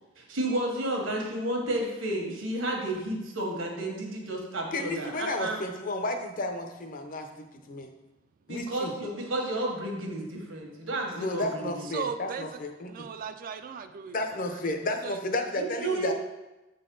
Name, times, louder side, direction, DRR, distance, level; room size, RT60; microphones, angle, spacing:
voice 1, 0.2-5.6 8.5-11.9 15.6-16.1, right 1 dB, 80° right, 0 dB, 1.3 m, -32 dB
voice 2, 4.5-7.9 8.5-8.9 11.1-13.1 14.1-16.1, left 1 dB, 45° left, 5 dB, 0.7 m, -32 dB
voice 3, 11.9-12.5 12.9-14.2 14.5-15.2, right 6 dB, 45° right, 9 dB, 0.3 m, -37 dB
7.2 x 4.1 x 3.8 m, 1.0 s
head